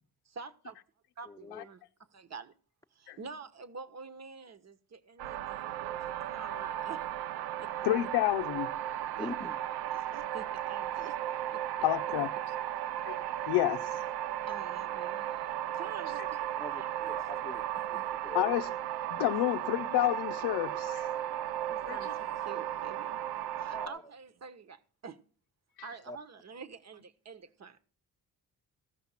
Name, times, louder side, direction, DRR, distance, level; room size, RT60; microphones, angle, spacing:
voice 1, 0.3-0.8 1.2-1.8 2.1-2.5 2.9-7.0 7.6-7.7 9.1-9.3 9.9-11.2 11.5-11.6 13.9-14.0 14.5-15.5 15.7-17.3 17.8-18.1 21.7-23.2 23.6-25.2 25.8-27.8, right 5 dB, 45° right, 1.4 m, -47 dB
voice 2, 1.3-1.7 9.2-9.6 16.6-16.8 17.1-17.6 18.2-18.5 19.2-19.3 23.7-24.0 26.1-26.2, left 2 dB, 10° left, 1.0 m, -43 dB
sound 1, 5.2-23.9, right 12 dB, 90° right, 0.6 m, -35 dB
voice 3, 7.8-8.7 11.8-12.3 13.0-13.2 13.5-14.0 18.3-18.8 19.1-21.2 21.9-22.1 25.8-25.9, left 15 dB, 85° left, 0.5 m, -29 dB
15.5 x 5.8 x 5.7 m
supercardioid pair, 60°, 37 cm